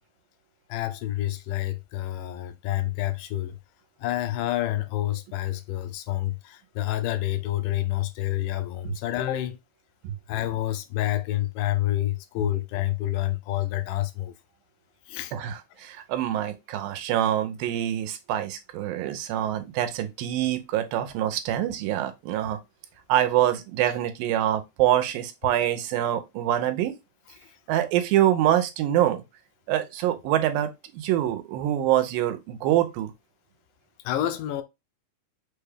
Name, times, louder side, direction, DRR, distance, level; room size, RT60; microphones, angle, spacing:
voice 1, 0.7-3.6 4.0-9.6 10.3-14.3 15.1-15.3 34.0-34.6, left 14 dB, 80° left, 2.0 m, -28 dB
voice 2, 15.3-22.6 23.1-26.9 27.7-29.2 29.7-33.1, right 12 dB, 85° right, 2.4 m, -25 dB
6.1 x 2.3 x 3.3 m
omnidirectional pair, 4.1 m